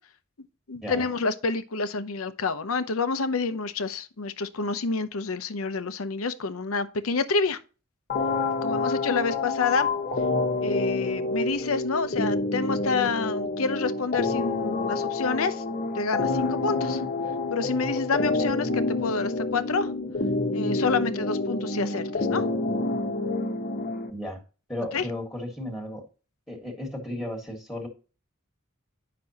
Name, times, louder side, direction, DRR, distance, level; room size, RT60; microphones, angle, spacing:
voice 1, 0.7-7.6 8.6-9.9 10.6-15.6 15.9-17.0 17.5-19.9 20.5-22.4 24.9-25.1, left 4 dB, 80° left, 0.8 m, -28 dB
sound 1, 8.1-24.1, left 3 dB, 45° left, 1.1 m, -28 dB
voice 2, 24.7-26.0 26.5-27.9, left 1 dB, 10° left, 1.6 m, -34 dB
9.6 x 6.0 x 2.9 m
head